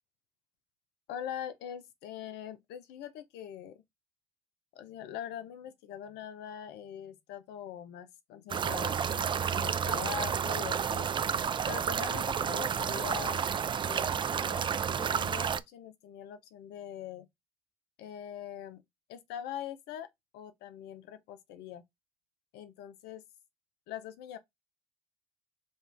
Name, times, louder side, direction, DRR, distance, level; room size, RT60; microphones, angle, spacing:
voice 1, 1.1-3.8 4.7-11.1 11.7-17.3 18.0-18.8 19.1-20.1 20.3-21.8 22.5-23.2 23.9-24.4, left 10 dB, 65° left, 0.6 m, -43 dB
sound 1, 8.5-15.6, right 7 dB, 25° right, 0.3 m, -31 dB
5.3 x 2.5 x 3.3 m
hypercardioid pair, 60°, 18 cm